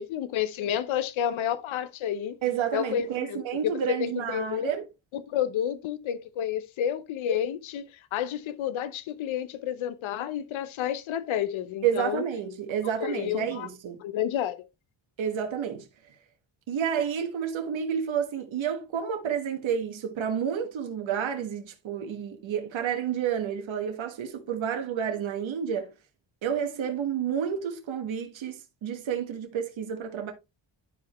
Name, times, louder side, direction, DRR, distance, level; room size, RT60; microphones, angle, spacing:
voice 1, 0.0-2.4 2.7-4.7 5.1-12.2 13.0-13.7 14.0-14.6, left 9 dB, 90° left, 0.8 m, -30 dB
voice 2, 2.4-4.9 11.8-14.0 15.2-15.9 16.7-25.9 26.4-30.3, right 8 dB, 80° right, 1.5 m, -30 dB
10.5 x 5.0 x 3.1 m
cardioid pair, 85°, 46 cm